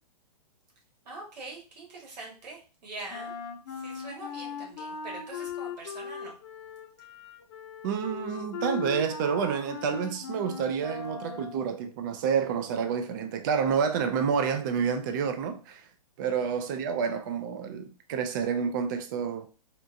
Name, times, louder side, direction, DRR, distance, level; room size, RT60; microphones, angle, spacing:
voice 1, 1.1-3.3 3.8-6.3 16.3-16.6, right 2 dB, 85° right, 1.8 m, -43 dB
Wind instrument woodwind instrument, 3.1-11.7, left 6 dB, 40° left, 0.6 m, -39 dB
voice 2, 7.8-15.9 16.2-19.5, right 6 dB, 30° right, 0.4 m, -29 dB
4.2 x 2.4 x 2.6 m
hypercardioid pair, 155°, 21 cm